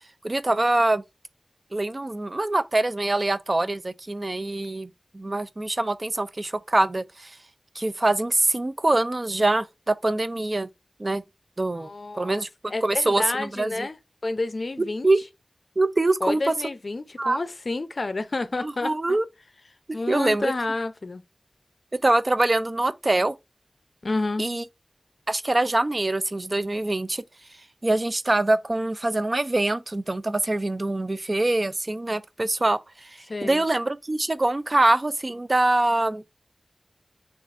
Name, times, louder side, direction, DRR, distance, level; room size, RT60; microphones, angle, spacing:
voice 1, 0.2-1.0 1.7-7.4 7.8-10.7 11.0-11.2 11.6-11.9 12.2-13.9 15.0-15.2 15.8-16.5 17.2-17.4 18.6-19.3 19.9-20.5 22.0-23.3 24.4-24.6 25.3-27.2 27.8-36.2, right 2 dB, 35° right, 0.3 m, -24 dB
voice 2, 11.7-12.4 12.7-14.0 14.2-15.1 16.2-19.2 19.9-21.2 24.0-24.5 33.3-33.7, left 2 dB, 60° left, 0.5 m, -30 dB
6.0 x 2.4 x 2.4 m
wide cardioid pair, 75°, 0 cm